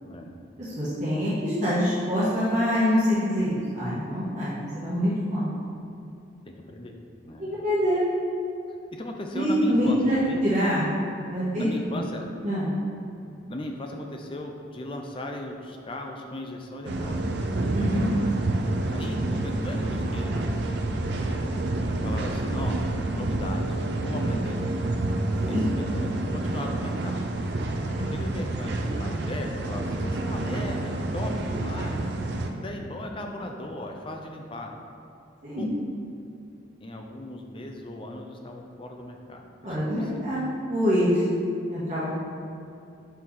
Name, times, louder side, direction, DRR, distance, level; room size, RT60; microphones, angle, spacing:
voice 1, 0.0-0.3 6.5-7.0 7.3-7.5 8.9-10.4 11.5-12.2 13.5-17.2 18.9-20.5 21.9-22.8 23.1-23.7 24.0-24.8 25.5-27.2 28.1-32.0 32.6-34.7 35.6-35.7 36.8-40.3, left 1 dB, 25° left, 2 dB, 0.5 m, -37 dB
voice 2, 0.6-5.5 7.4-8.0 9.3-10.9 11.3-11.9 12.4-12.7 17.7-18.1 25.4-25.6 35.4-35.7 39.6-41.2 41.7-42.1, equal, 40° right, -11 dB, 1.4 m, -25 dB
sound 1, 16.8-32.5, right 2 dB, 60° right, 0.5 m, -28 dB
5.6 x 4.3 x 4.8 m, 2.6 s
head